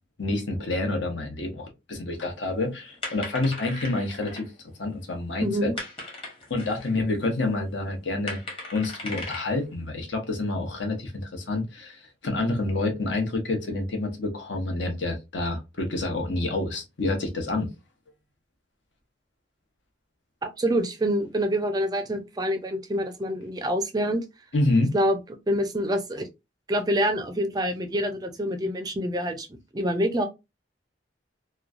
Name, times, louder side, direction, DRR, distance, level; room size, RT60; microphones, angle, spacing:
voice 1, 0.2-4.5 4.8-5.7 6.5-8.4 8.7-17.7 24.5-24.9, left 2 dB, 80° left, 0.9 m, -28 dB
sound 1, 2.3-6.9 7.5-9.7, left 2 dB, 30° left, 1.0 m, -38 dB
voice 2, 5.4-5.8 20.4-24.2 24.9-25.2 25.5-26.3 26.7-30.2, equal, 20° right, 0.4 m, -26 dB
3.0 x 2.2 x 2.4 m
head